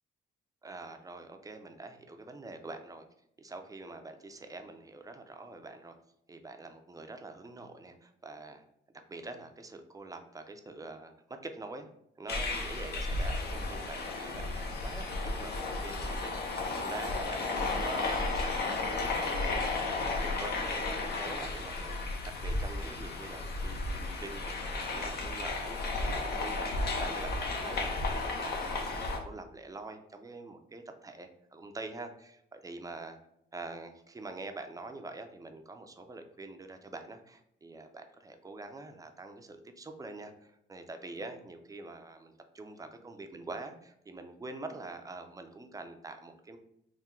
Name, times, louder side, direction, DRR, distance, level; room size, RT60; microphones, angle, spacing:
voice 1, 0.6-3.1 3.4-6.0 6.3-8.6 8.9-11.9 12.2-19.8 20.1-33.2 33.5-46.6, right 2 dB, 15° right, 6 dB, 0.5 m, -45 dB
sound 1, 12.3-29.2, left 3 dB, 55° left, 0.8 m, -33 dB
3.6 x 2.2 x 4.3 m, 0.76 s
cardioid pair, 90°, 20 cm